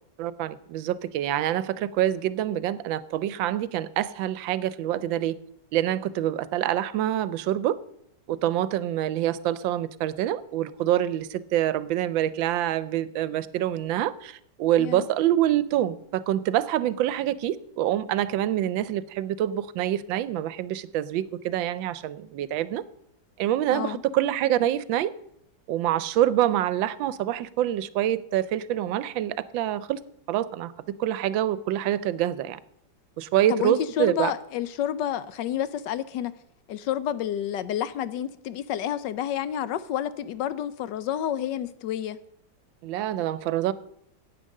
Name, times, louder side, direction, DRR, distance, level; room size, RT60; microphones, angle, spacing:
voice 1, 0.2-5.4 5.7-7.8 8.3-22.8 23.4-25.1 25.7-30.0 30.3-32.6 33.2-34.3 42.8-43.7, right 12 dB, 80° right, 1.3 m, -26 dB
voice 2, 33.5-36.3 36.7-42.2, left 10 dB, 75° left, 1.2 m, -29 dB
9.9 x 8.8 x 6.5 m
omnidirectional pair, 2.1 m